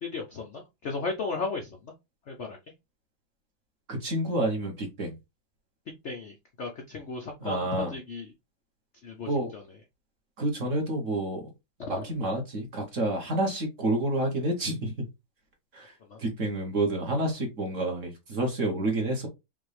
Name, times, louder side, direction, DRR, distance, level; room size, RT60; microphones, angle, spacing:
voice 1, 0.0-1.9 2.3-2.6 6.0-8.3 9.0-9.6 11.8-12.0 16.1-16.2, left 4 dB, 70° left, 0.6 m, -35 dB
voice 2, 3.9-5.2 7.4-7.9 9.2-9.5 10.4-11.5 11.9-14.9 15.7-19.3, right 1 dB, 45° right, 1.3 m, -29 dB
5.5 x 2.5 x 3.3 m
omnidirectional pair, 2.1 m